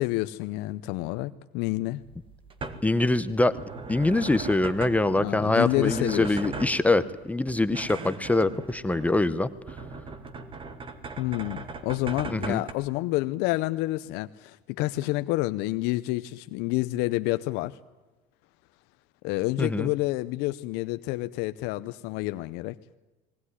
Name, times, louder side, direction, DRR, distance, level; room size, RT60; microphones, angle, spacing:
voice 1, 0.0-2.0 5.2-6.4 11.2-17.8 19.2-22.8, left 18 dB, 75° left, 12 dB, 0.7 m, -29 dB
sound 1, 2.0-12.7, right 4 dB, 30° right, 2.2 m, -40 dB
voice 2, 2.8-3.5 3.9-9.5 12.3-12.6 19.6-19.9, left 2 dB, 10° left, 12 dB, 0.8 m, -24 dB
20.5 x 18.0 x 9.9 m, 1.2 s
cardioid pair, 120°, 17 cm